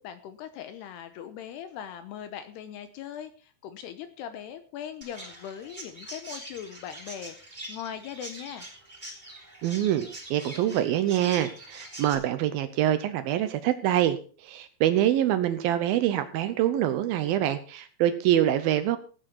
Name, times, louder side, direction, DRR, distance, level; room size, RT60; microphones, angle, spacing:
voice 1, 0.0-8.7, left 9 dB, 75° left, 10 dB, 2.7 m, -40 dB
Chirp tweet, 5.0-12.1, right 1 dB, 10° right, 2.9 m, -44 dB
voice 2, 9.6-19.0, right 12 dB, 80° right, 11 dB, 2.1 m, -25 dB
17.5 x 9.2 x 4.4 m, 0.39 s
omnidirectional pair, 5.4 m